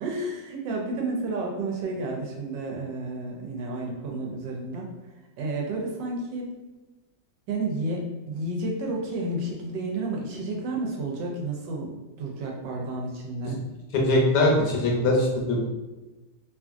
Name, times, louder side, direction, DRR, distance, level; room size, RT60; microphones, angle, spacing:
voice 1, 0.0-4.9 5.4-6.5 7.5-13.6, right 2 dB, 80° right, -1 dB, 1.3 m, -31 dB
voice 2, 14.0-15.6, left 1 dB, 75° left, -2 dB, 1.2 m, -21 dB
3.0 x 2.5 x 2.4 m, 1.1 s
omnidirectional pair, 2.0 m